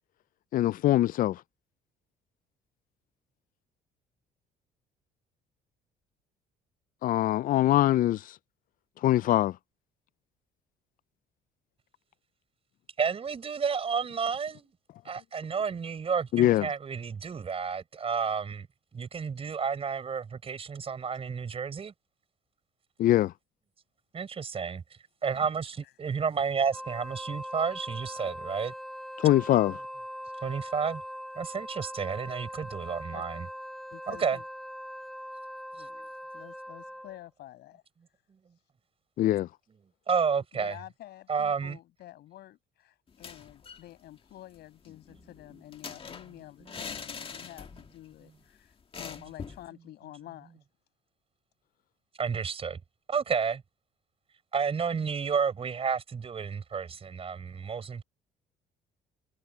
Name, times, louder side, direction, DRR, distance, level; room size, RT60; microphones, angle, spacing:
voice 1, 0.5-1.4 7.0-8.2 9.0-9.6 16.3-16.7 23.0-23.3 29.2-29.8 39.2-39.5, left 14 dB, 55° left, 0.4 m, -23 dB
voice 2, 13.0-14.7 15.0-18.7 18.9-21.9 24.1-24.8 25.2-28.7 30.4-31.0 31.3-33.5 34.1-34.4 40.1-40.8 41.3-41.8 52.2-52.8 53.1-53.6 54.5-58.0, right 6 dB, 35° right, 4.8 m, -31 dB
Wind instrument woodwind instrument, 26.7-37.2, equal, ahead, 7.1 m, -41 dB
voice 3, 33.9-34.4 35.7-37.8 40.5-48.7 49.0-50.5, left 14 dB, 75° left, 7.4 m, -49 dB
sound 1, 43.1-43.9 44.2-44.3 44.6-48.0 48.3-48.4 48.9-49.7, left 6 dB, 35° left, 1.8 m, -43 dB
cardioid pair, 110°, 17 cm